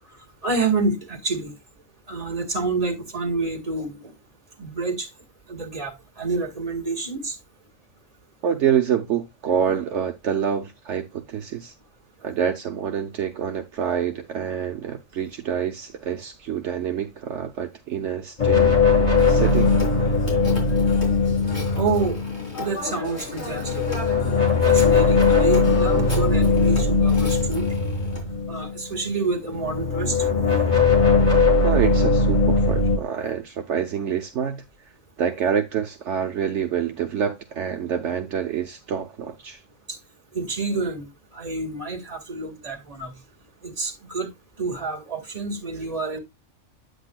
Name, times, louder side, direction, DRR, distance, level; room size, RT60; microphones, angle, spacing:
voice 1, 0.4-1.5 2.1-4.1 4.6-5.1 5.5-7.4 21.8-22.2 22.6-23.8 24.6-27.7 28.5-30.2 40.3-41.1 41.3-43.1 43.6-44.3 44.6-46.2, right 3 dB, 30° right, 2.0 m, -28 dB
voice 2, 8.4-11.7 12.2-19.7 31.6-34.9 35.2-39.6, right 8 dB, 70° right, 1.1 m, -27 dB
sound 1, 18.4-22.6 23.4-29.1 29.5-33.0, left 4 dB, 35° left, 2.0 m, -19 dB
Telephone, 19.2-28.2, left 2 dB, 55° left, 4.0 m, -36 dB
9.0 x 8.1 x 2.3 m
omnidirectional pair, 1.3 m